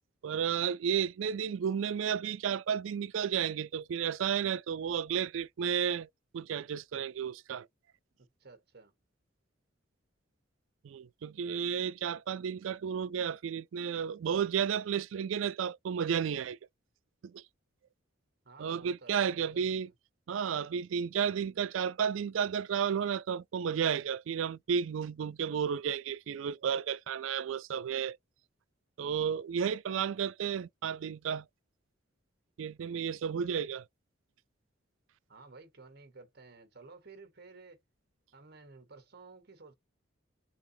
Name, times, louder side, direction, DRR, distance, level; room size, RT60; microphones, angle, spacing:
voice 1, 0.2-6.1 6.3-7.7 10.8-16.6 17.2-17.4 18.6-19.9 20.3-28.2 29.0-31.5 32.6-33.8, right 7 dB, 85° right, 0.4 m, -32 dB
voice 2, 8.1-8.9 18.4-19.9 35.3-37.8 38.3-39.7, right 3 dB, 55° right, 1.2 m, -54 dB
3.8 x 3.6 x 2.7 m
head